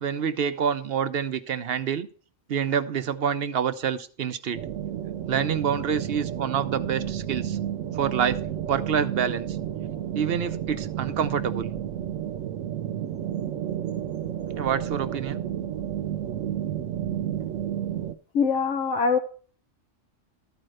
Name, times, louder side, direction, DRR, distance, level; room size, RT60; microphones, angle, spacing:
voice 1, 0.0-2.1 2.5-4.6 5.3-7.6 7.9-8.4 8.7-9.5 10.1-11.7 14.6-15.4, right 8 dB, 60° right, 0.8 m, -27 dB
sound 1, 4.5-18.1, right 10 dB, 90° right, 1.0 m, -31 dB
voice 2, 18.3-19.2, left 5 dB, 80° left, 1.0 m, -23 dB
13.0 x 4.5 x 6.4 m
omnidirectional pair, 1.3 m